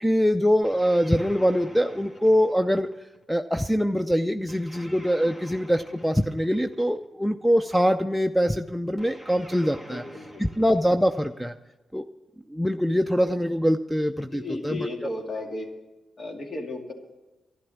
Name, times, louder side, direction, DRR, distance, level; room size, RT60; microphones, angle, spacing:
voice 1, 0.0-2.9 3.3-10.0 10.4-11.5 11.9-12.0 12.5-15.1, equal, ahead, 9 dB, 0.6 m, -23 dB
sound 1, 0.6-3.2 4.5-7.0 9.0-11.5, equal, 30° left, 2.7 m, -47 dB
voice 2, 9.9-10.6 14.3-15.7 16.2-16.9, left 2 dB, 50° left, 3 dB, 2.5 m, -34 dB
12.0 x 11.0 x 7.2 m, 1.1 s
supercardioid pair, 50°, 0 cm